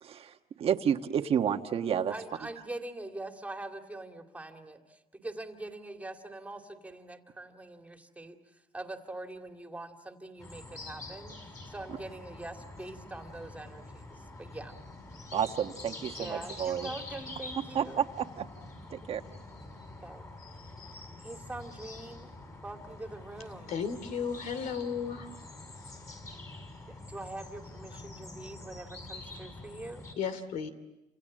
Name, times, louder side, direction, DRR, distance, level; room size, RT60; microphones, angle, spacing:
voice 1, 0.0-2.1 15.3-16.9 17.7-18.5 18.9-19.2, right 8 dB, 50° right, 6 dB, 1.3 m, -30 dB
voice 2, 2.1-14.8 16.2-18.0 20.0-20.3 21.2-22.3 22.6-23.8 26.9-30.0, right 2 dB, 10° right, 4 dB, 2.5 m, -43 dB
sound 1, 10.4-30.1, left 2 dB, 25° left, 5.5 m, -46 dB
voice 3, 23.7-25.3 25.9-26.0 30.2-30.7, left 6 dB, 80° left, 11 dB, 2.7 m, -34 dB
28.5 x 27.0 x 7.5 m, 0.97 s
cardioid pair, 125°, 13 cm